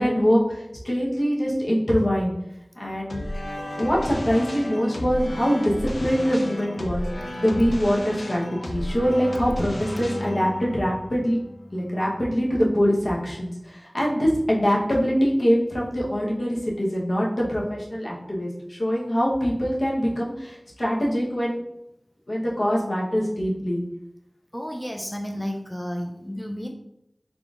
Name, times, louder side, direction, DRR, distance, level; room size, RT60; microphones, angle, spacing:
voice 1, 0.0-2.3 2.8-3.2 3.8-5.7 6.0-7.0 7.4-11.4 11.7-21.6 22.3-23.8, equal, 70° left, -5 dB, 0.9 m, -23 dB
sound 1, 3.1-12.3, left 1 dB, 90° left, 0.4 m, -34 dB
voice 2, 24.5-26.7, equal, 10° left, 2 dB, 0.4 m, -32 dB
3.7 x 3.7 x 2.4 m, 0.84 s
wide cardioid pair, 40°, 0 cm